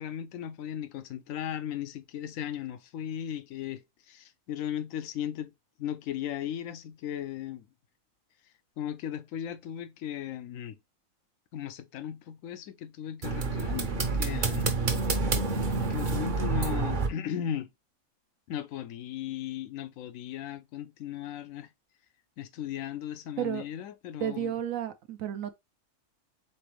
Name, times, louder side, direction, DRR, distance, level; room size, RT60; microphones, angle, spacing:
voice 1, 0.0-5.5 5.8-7.7 8.8-10.8 11.5-14.7 15.7-17.7 18.5-21.7 22.4-24.6, left 10 dB, 75° left, 1.0 m, -37 dB
sound 1, 13.2-17.1, right 3 dB, 45° right, 0.8 m, -28 dB
voice 2, 24.2-25.5, right 10 dB, 80° right, 1.1 m, -32 dB
4.2 x 3.8 x 3.1 m
omnidirectional pair, 1.4 m